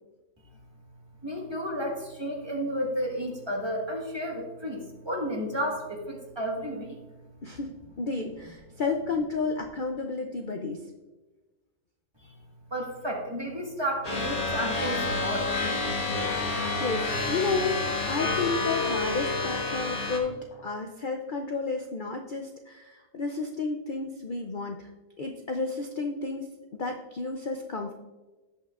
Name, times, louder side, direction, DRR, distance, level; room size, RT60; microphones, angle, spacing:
voice 1, 1.2-7.0 12.7-15.5, equal, 20° right, 0 dB, 1.5 m, -32 dB
voice 2, 7.4-10.8 15.9-24.9 25.2-26.5 26.8-27.9, left 4 dB, 50° left, 3 dB, 0.6 m, -32 dB
sound 1, 14.0-20.2, left 3 dB, 85° left, 1.9 m, -29 dB
16.5 x 5.7 x 2.4 m, 1.2 s
omnidirectional pair, 1.5 m